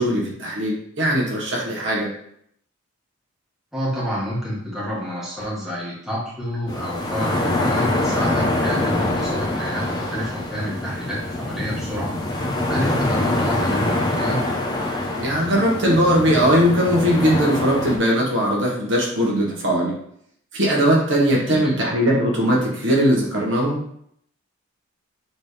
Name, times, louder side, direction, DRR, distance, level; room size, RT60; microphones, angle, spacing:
voice 1, 0.0-2.1 15.1-19.9 20.5-23.8, equal, 60° right, -3 dB, 1.7 m, -19 dB
voice 2, 3.7-12.1 12.7-14.4 21.3-21.9, equal, ahead, -7 dB, 1.8 m, -29 dB
sound 1, 6.7-18.0, left 1 dB, 20° left, 0.9 m, -24 dB
7.3 x 3.8 x 3.4 m, 0.69 s
head